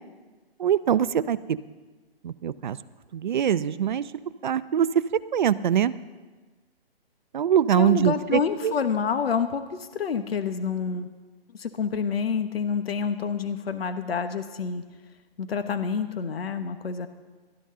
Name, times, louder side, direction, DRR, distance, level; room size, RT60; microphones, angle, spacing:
voice 1, 0.6-1.6 2.2-2.8 3.1-4.1 4.4-5.9 7.3-8.7, right 9 dB, 50° right, 15 dB, 0.6 m, -23 dB
voice 2, 7.7-11.1 11.5-14.8 15.4-17.1, left 6 dB, 70° left, 9 dB, 1.1 m, -28 dB
18.0 x 12.5 x 3.8 m, 1.3 s
hypercardioid pair, 160°, 31 cm